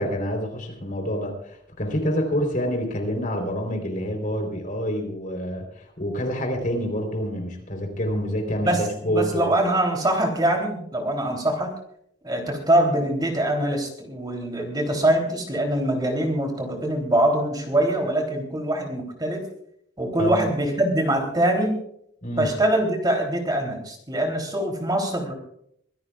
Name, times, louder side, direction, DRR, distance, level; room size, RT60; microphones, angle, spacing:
voice 1, 0.0-9.5 20.2-20.4 22.2-22.5, equal, 45° left, 3 dB, 3.8 m, -27 dB
voice 2, 8.6-11.7 12.2-19.4 20.0-21.8 22.4-25.3, right 1 dB, 20° right, 2 dB, 3.2 m, -23 dB
24.5 x 16.0 x 2.4 m, 0.69 s
head